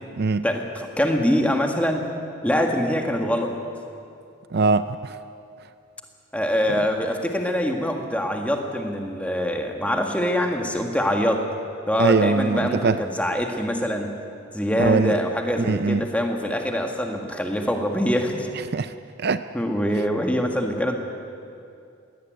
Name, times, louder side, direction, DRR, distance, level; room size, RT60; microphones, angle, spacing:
voice 1, 0.4-2.1 2.4-3.5 6.3-11.5 11.9-14.2 14.5-18.5 19.5-21.0, equal, 5° left, 3 dB, 1.7 m, -24 dB
voice 2, 4.5-5.2 6.8-6.9 12.0-13.0 14.8-15.2 15.6-16.0 18.7-19.4, right 4 dB, 45° right, 12 dB, 0.4 m, -22 dB
21.0 x 17.0 x 9.2 m, 2.5 s
head